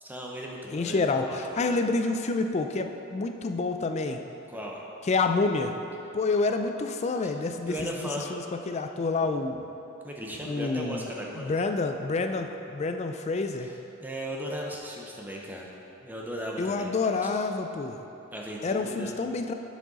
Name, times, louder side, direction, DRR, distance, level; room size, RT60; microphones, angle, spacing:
voice 1, 0.0-1.7 4.5-4.8 7.2-7.3 7.7-8.3 10.0-11.5 12.4-12.5 14.0-15.7 16.0-16.9 17.2-17.3 18.3-19.2, equal, 10° right, -2 dB, 0.6 m, -37 dB
voice 2, 0.7-4.2 5.1-5.7 6.1-9.7 10.4-11.1 11.4-13.7 16.6-18.0 18.6-19.5, left 3 dB, 30° left, 6 dB, 0.3 m, -28 dB
7.3 x 6.2 x 3.9 m, 3.0 s
head